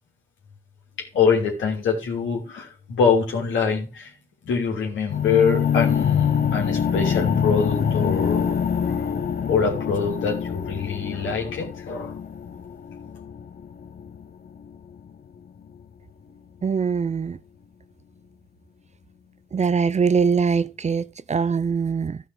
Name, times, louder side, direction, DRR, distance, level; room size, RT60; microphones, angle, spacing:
voice 1, 1.0-4.1 4.4-9.1 9.5-12.2, left 5 dB, 75° left, 2.9 m, -24 dB
sound 1, 5.1-15.1, left 7 dB, 50° left, 1.0 m, -25 dB
voice 2, 16.6-17.4 19.5-22.2, right 5 dB, 35° right, 0.6 m, -22 dB
13.0 x 5.5 x 6.2 m
supercardioid pair, 50°, 20 cm